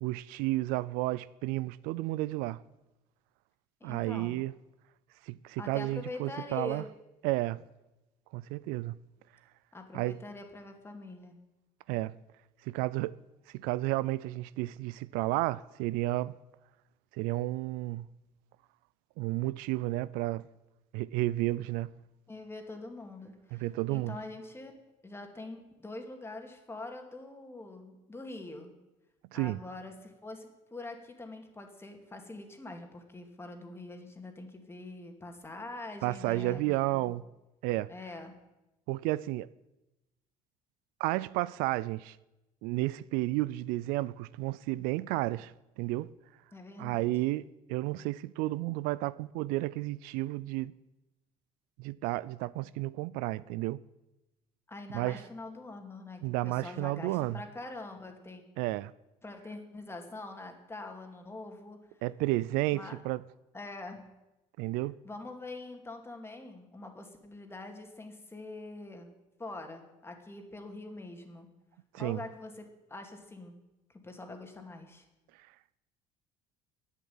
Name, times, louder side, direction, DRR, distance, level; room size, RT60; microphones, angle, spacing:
voice 1, 0.0-2.6 3.8-4.5 5.3-6.8 7.2-7.6 8.3-9.0 9.9-10.2 11.9-12.1 12.7-13.2 13.5-16.3 17.1-18.1 19.2-20.5 20.9-21.9 23.5-24.2 29.3-29.6 36.0-37.2 37.6-37.9 38.9-39.5 41.0-42.2 42.6-46.1 46.8-50.7 51.8-53.8 54.9-55.2 56.2-57.4 58.6-58.9 62.0-63.2 64.6-65.0 71.9-72.2, right 18 dB, 85° right, 0.4 m, -32 dB
voice 2, 3.8-4.4 5.6-6.9 9.7-11.4 22.3-24.7 25.0-28.7 29.3-37.1 37.9-38.4 46.5-47.1 54.7-58.4 59.2-61.8 62.7-63.0 63.5-64.1 65.0-69.1 69.4-71.5 71.9-73.5 73.9-75.0, left 2 dB, 15° left, 2.5 m, -44 dB
11.0 x 8.2 x 9.5 m
supercardioid pair, 95°, 15 cm